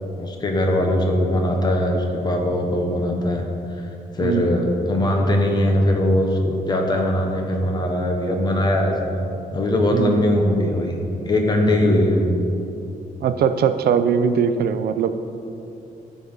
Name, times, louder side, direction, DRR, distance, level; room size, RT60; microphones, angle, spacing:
voice 1, 0.2-3.4 4.1-9.2 9.5-11.0 11.2-12.3, left 1 dB, 25° left, 1 dB, 1.2 m, -20 dB
voice 2, 4.2-4.5 9.9-10.2 13.2-15.2, right 7 dB, 85° right, 10 dB, 0.6 m, -20 dB
13.5 x 4.9 x 5.6 m, 2.7 s
wide cardioid pair, 170°, 16 cm